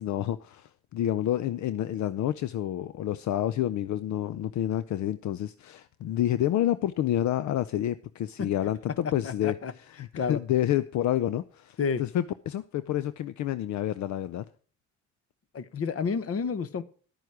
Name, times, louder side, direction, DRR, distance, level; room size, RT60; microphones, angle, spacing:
voice 1, 0.0-9.6 9.9-14.4, left 12 dB, 70° left, 0.6 m, -29 dB
voice 2, 9.2-9.7 10.1-10.4 11.8-12.0 15.5-16.8, left 5 dB, 50° left, 1.1 m, -30 dB
11.0 x 9.2 x 4.9 m
cardioid pair, 90°, 30 cm